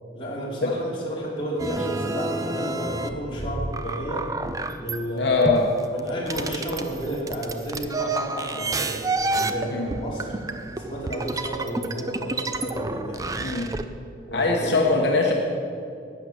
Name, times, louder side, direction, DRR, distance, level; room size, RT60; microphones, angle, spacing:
voice 1, 0.1-4.3 4.8-5.5 5.9-9.0 9.3-10.3 10.8-13.3 14.3-14.9, right 1 dB, 30° left, -5 dB, 2.9 m, -32 dB
sound 1, 1.6-5.0 5.5-13.8, right 2 dB, 20° right, 0.4 m, -29 dB
voice 2, 5.2-5.7 9.7-9.9 13.4-13.7 14.3-15.3, left 3 dB, 75° left, 0 dB, 1.1 m, -22 dB
11.5 x 8.8 x 6.5 m, 2.6 s
head